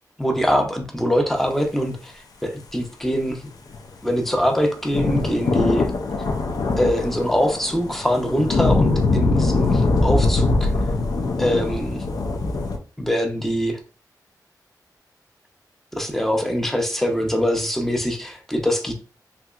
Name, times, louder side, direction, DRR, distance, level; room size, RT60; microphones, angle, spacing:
voice 1, 0.2-2.1 2.4-3.5 4.0-5.9 6.8-10.9 11.4-12.0 13.0-13.8 16.0-18.9, equal, 5° left, 3 dB, 0.6 m, -23 dB
sound 1, 3.7-12.8, left 3 dB, 65° left, 0.5 m, -22 dB
3.3 x 2.8 x 2.4 m, 0.39 s
wide cardioid pair, 120°, 7 cm